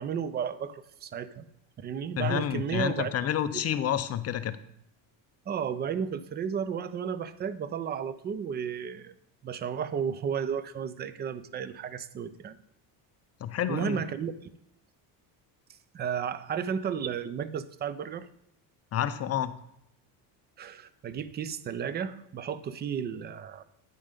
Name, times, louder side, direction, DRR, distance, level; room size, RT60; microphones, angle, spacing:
voice 1, 0.0-1.4 1.8-3.1 5.5-9.1 9.4-12.6 13.7-14.3 15.9-18.3 20.6-23.6, right 7 dB, 25° right, 15 dB, 0.4 m, -33 dB
voice 2, 2.2-4.6 13.4-14.0 18.9-19.5, left 10 dB, 35° left, 12 dB, 0.5 m, -29 dB
9.6 x 5.4 x 5.1 m, 0.75 s
cardioid pair, 130°, 43 cm